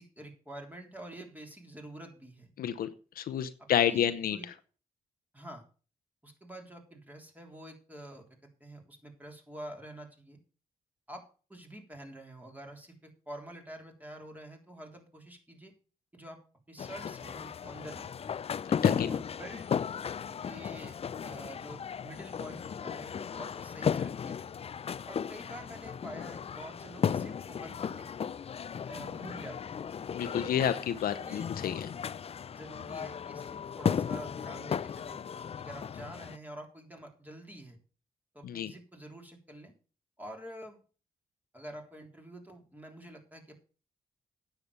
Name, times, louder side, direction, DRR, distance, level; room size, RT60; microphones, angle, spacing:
voice 1, 0.0-2.5 3.6-4.5 5.3-5.6 6.2-8.3 8.6-10.4 11.1-11.2 11.5-15.7 16.1-16.4 16.7-18.3 19.1-19.6 20.4-21.0 21.2-24.4 25.1-28.1 28.9-29.8 31.1-31.5 32.5-35.2 35.6-37.8 38.3-39.7 40.2-40.8 41.5-43.5, right 1 dB, 10° right, 2 dB, 3.5 m, -47 dB
voice 2, 2.6-2.9 3.2-4.4 18.8-19.1 30.1-31.9 38.4-38.7, left 9 dB, 75° left, 12 dB, 0.8 m, -30 dB
sound 1, 16.8-36.4, left 7 dB, 40° left, 0.4 m, -35 dB
9.5 x 7.2 x 6.7 m, 0.38 s
cardioid pair, 60°, 15 cm